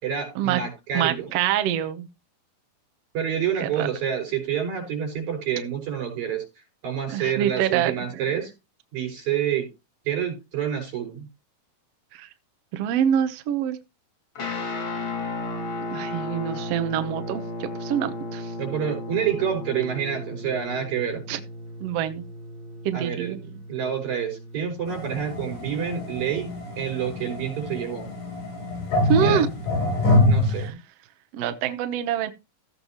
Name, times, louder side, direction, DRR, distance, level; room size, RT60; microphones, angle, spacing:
voice 1, 0.0-1.3 3.1-6.4 6.8-8.5 8.9-9.7 10.1-11.3 18.6-21.3 22.9-23.4 23.7-28.1 29.2-29.4 30.2-30.8, right 8 dB, 55° right, 6.6 m, -28 dB
voice 2, 0.9-2.1 3.6-3.9 7.1-8.4 12.1-12.3 12.7-13.8 15.9-18.5 21.3-21.4 21.8-22.3 22.8-23.6 29.1-29.5 30.5-30.7 31.3-32.3, right 9 dB, 85° right, 1.4 m, -26 dB
Guitar, 14.4-25.8, left 2 dB, 35° left, 2.9 m, -35 dB
sound 1, 24.9-30.7, left 1 dB, 60° left, 5.2 m, -25 dB
15.0 x 8.1 x 3.0 m
omnidirectional pair, 4.2 m